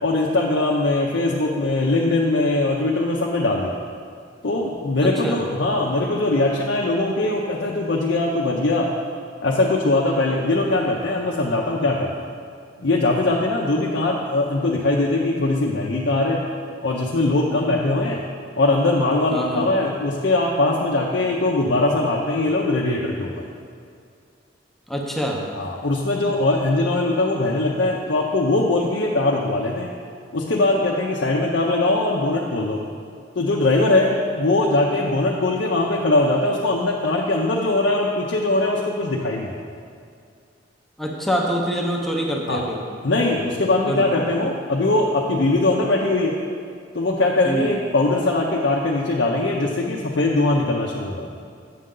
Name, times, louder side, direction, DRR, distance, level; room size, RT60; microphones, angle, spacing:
voice 1, 0.0-3.7 4.4-8.9 9.4-12.1 12.8-16.4 16.8-18.2 18.6-23.3 25.5-29.9 30.3-32.8 33.4-39.6 42.5-42.6 43.0-46.3 46.9-51.3, left 2 dB, 70° left, -3 dB, 0.6 m, -21 dB
voice 2, 5.0-5.4 19.3-19.7 24.9-25.5 41.0-42.8 43.8-44.1 47.4-47.7, equal, ahead, -1 dB, 0.7 m, -25 dB
8.5 x 6.6 x 3.8 m, 2.3 s
head